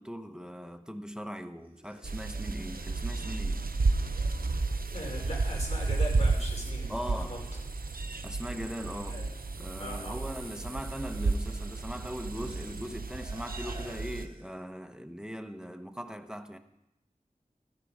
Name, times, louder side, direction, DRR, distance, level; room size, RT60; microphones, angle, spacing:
voice 1, 0.0-3.6 6.9-7.4 8.2-9.2 9.6-16.6, equal, 5° right, 1.0 m, -40 dB
sound 1, 1.6-7.8 8.1-14.6, right 1 dB, 40° right, 2.2 m, -55 dB
sound 2, 2.0-14.3, right 3 dB, 85° right, 0.6 m, -32 dB
voice 2, 4.9-6.9 7.2-7.4 9.1-9.3 9.8-10.1, left 1 dB, 50° left, 4.9 m, -39 dB
14.5 x 13.5 x 4.9 m
wide cardioid pair, 45°, 15 cm